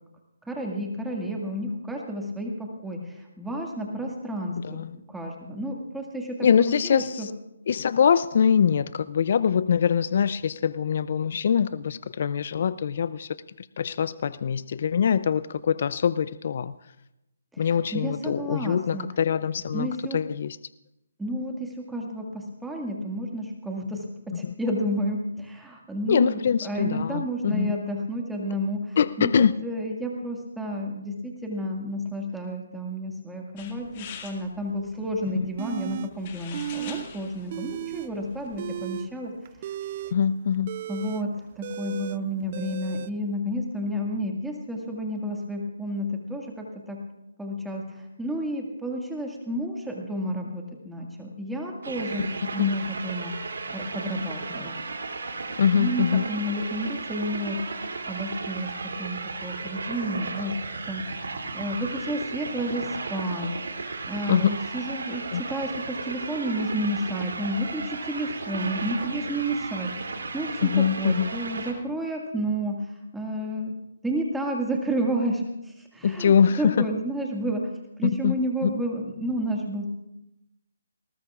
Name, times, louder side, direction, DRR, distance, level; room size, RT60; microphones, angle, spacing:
voice 1, 0.5-7.3 17.5-19.1 19.7-20.2 21.2-39.3 39.6-39.7 40.9-47.0 47.4-53.3 53.7-54.7 55.7-57.6 58.1-60.6 60.9-61.0 61.5-63.5 64.1-73.8 74.0-77.7 78.0-79.8, equal, 5° right, 0 dB, 1.9 m, -31 dB
voice 2, 6.4-7.3 7.7-16.8 17.6-19.9 20.1-20.6 24.4-24.5 26.1-27.8 29.0-29.5 35.3-35.5 40.1-40.7 52.6-52.7 55.6-56.2 64.3-64.5 65.3-65.4 70.6-71.3 76.0-76.9 78.0-78.7, left 7 dB, 55° left, 17 dB, 0.4 m, -23 dB
sound 1, 33.6-39.0, left 7 dB, 35° left, 2.0 m, -46 dB
sound 2, 35.6-36.1 36.5-37.1 37.3-38.1 38.5-43.1, right 11 dB, 40° right, 0.4 m, -35 dB
sound 3, 51.8-71.7, right 3 dB, 75° right, 2.8 m, -35 dB
20.5 x 19.0 x 2.4 m, 0.91 s
figure-of-eight pair, 145°, 0 cm